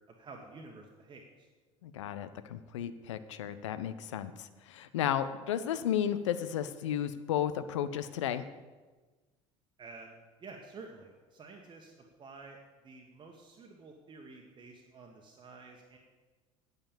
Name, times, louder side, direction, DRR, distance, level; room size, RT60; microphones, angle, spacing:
voice 1, 0.1-1.5 9.8-10.1 10.4-12.6 12.8-16.0, right 3 dB, 30° right, 1 dB, 1.4 m, -50 dB
voice 2, 1.8-8.4, left 10 dB, 65° left, 12 dB, 0.7 m, -33 dB
9.3 x 8.7 x 7.1 m, 1.3 s
figure-of-eight pair, 65°, 17 cm